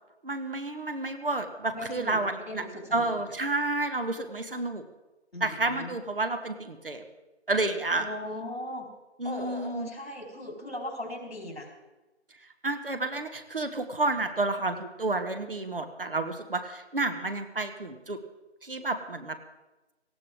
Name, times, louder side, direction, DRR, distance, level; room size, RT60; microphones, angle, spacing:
voice 1, 0.2-2.6 2.9-4.8 5.4-7.0 7.5-8.0 9.2-9.9 12.6-18.2 18.6-19.3, right 2 dB, 50° right, 8 dB, 1.4 m, -30 dB
voice 2, 1.7-3.3 5.3-5.9 8.0-8.9 9.2-11.7, left 1 dB, 60° left, 1 dB, 4.0 m, -38 dB
18.5 x 15.5 x 3.6 m, 1.1 s
figure-of-eight pair, 165°, 34 cm